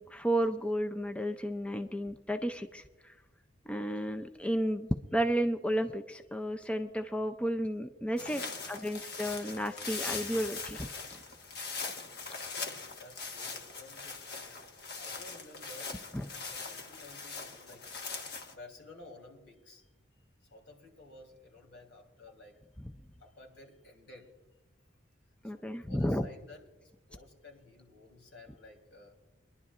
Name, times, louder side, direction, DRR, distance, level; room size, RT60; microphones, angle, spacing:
voice 1, 0.0-3.1 3.7-8.4 8.7-10.9 16.1-16.2 25.4-26.3, equal, 5° left, 6 dB, 0.4 m, -32 dB
voice 2, 8.2-9.1 12.5-16.0 16.5-19.8 20.1-22.6 23.2-24.3 24.9-25.0 25.4-26.6 27.1-29.2, left 2 dB, 75° left, 1 dB, 3.4 m, -54 dB
sound 1, 8.2-18.5, left 4 dB, 55° left, 1.3 m, -41 dB
25.5 x 11.0 x 2.5 m, 1.1 s
head